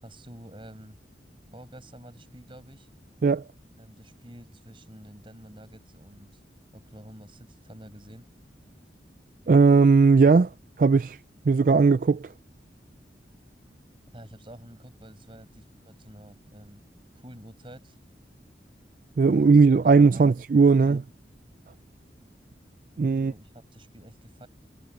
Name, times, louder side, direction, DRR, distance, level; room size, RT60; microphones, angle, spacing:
voice 1, 0.0-1.0 1.5-2.9 3.8-6.4 6.7-8.3 14.1-16.8 17.1-18.0 19.3-20.4 20.8-21.0 23.0-24.5, equal, 30° right, 6.8 m, -48 dB
voice 2, 9.5-10.5 10.8-11.2 11.5-12.3 19.2-21.0 23.0-23.3, right 4 dB, 50° right, 0.4 m, -18 dB
head